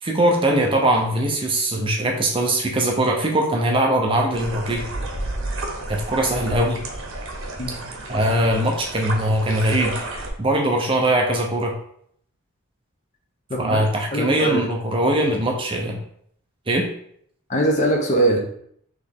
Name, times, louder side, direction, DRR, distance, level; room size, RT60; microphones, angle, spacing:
voice 1, 0.0-4.8 5.9-6.8 8.1-10.0 10.4-11.8 13.6-16.0 16.7-16.9, right 1 dB, 25° right, 1 dB, 0.5 m, -21 dB
sound 1, 4.3-10.3, right 2 dB, 60° right, 0.8 m, -31 dB
voice 2, 13.5-13.8 14.1-14.6 17.5-18.4, right 1 dB, 30° left, 1 dB, 0.7 m, -21 dB
4.0 x 3.1 x 3.4 m, 0.67 s
head